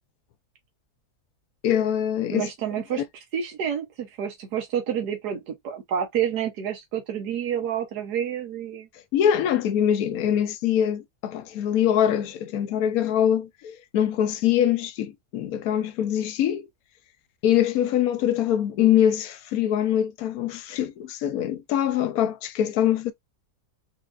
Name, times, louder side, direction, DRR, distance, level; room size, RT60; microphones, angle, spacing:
voice 1, 1.6-2.5 2.9-3.0 9.1-16.7 17.4-23.1, left 10 dB, 70° left, 1.0 m, -23 dB
voice 2, 2.3-8.9, right 9 dB, 80° right, 1.5 m, -29 dB
4.3 x 3.6 x 2.5 m
omnidirectional pair, 1.7 m